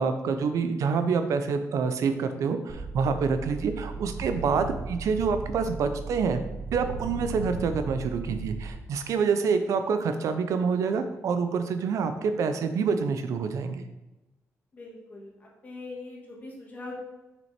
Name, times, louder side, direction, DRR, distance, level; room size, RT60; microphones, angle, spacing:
voice 1, 0.0-6.4 6.7-13.8, right 5 dB, 70° right, 8 dB, 0.6 m, -27 dB
sound 1, 2.7-8.7, right 3 dB, 85° right, 1.6 m, -36 dB
voice 2, 14.7-16.9, left 2 dB, 30° left, -2 dB, 1.8 m, -42 dB
6.4 x 6.1 x 4.4 m, 1.0 s
wide cardioid pair, 170°, 6 cm